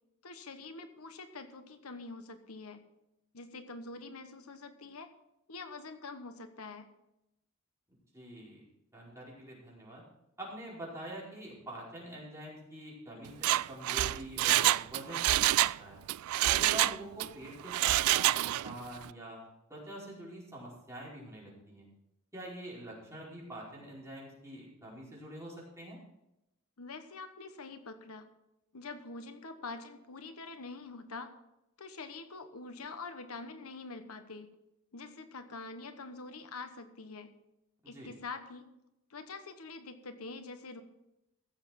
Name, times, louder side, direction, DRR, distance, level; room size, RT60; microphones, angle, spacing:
voice 1, 0.2-2.8 3.3-5.1 5.5-6.9 26.8-28.3 28.7-31.3 31.8-34.5 34.9-37.3 37.9-38.7 39.1-40.8, left 3 dB, 90° left, 8 dB, 1.2 m, -45 dB
voice 2, 8.1-8.6 8.9-10.0 10.4-16.0 16.5-19.4 19.7-21.9 22.3-26.0 37.8-38.1, right 1 dB, 15° right, -6 dB, 4.8 m, -45 dB
Mechanisms, 13.3-15.8 16.1-17.3 17.7-18.7 19.0-19.1, right 15 dB, 80° right, 0.3 m, -27 dB
15.5 x 7.3 x 5.9 m, 0.88 s
head